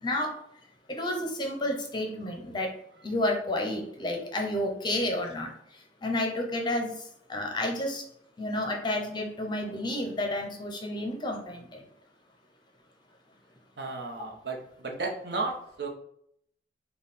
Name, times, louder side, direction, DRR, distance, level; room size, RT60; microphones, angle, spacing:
voice 1, 0.0-0.4 0.9-2.7 3.0-5.5 6.0-6.9 7.3-8.0 8.4-11.8, left 1 dB, 25° left, 2 dB, 0.7 m, -30 dB
voice 2, 13.8-15.9, right 3 dB, 60° right, 0 dB, 0.9 m, -34 dB
5.4 x 2.3 x 4.2 m, 0.71 s
head